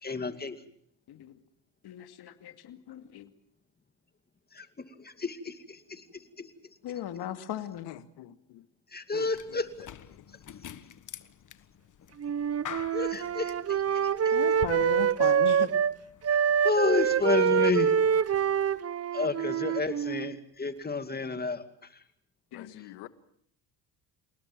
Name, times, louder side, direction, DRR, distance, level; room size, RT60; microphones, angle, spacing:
voice 1, 0.0-0.6 4.5-4.7 5.0-6.5 8.9-9.9 12.9-14.3 16.3-17.9 19.1-21.6, left 4 dB, 20° left, 2.5 m, -31 dB
voice 2, 1.8-3.3 6.8-7.9 14.3-15.7 22.5-22.7, left 10 dB, 65° left, 2.4 m, -37 dB
voice 3, 7.8-8.7 9.1-9.6 10.1-10.3 22.5-23.1, left 15 dB, 85° left, 1.7 m, -47 dB
sound 1, 9.3-18.8, left 9 dB, 45° left, 1.6 m, -48 dB
Wind instrument woodwind instrument, 12.2-15.9 16.2-20.4, right 8 dB, 35° right, 0.9 m, -26 dB
28.5 x 18.5 x 7.5 m
supercardioid pair, 85°, 41 cm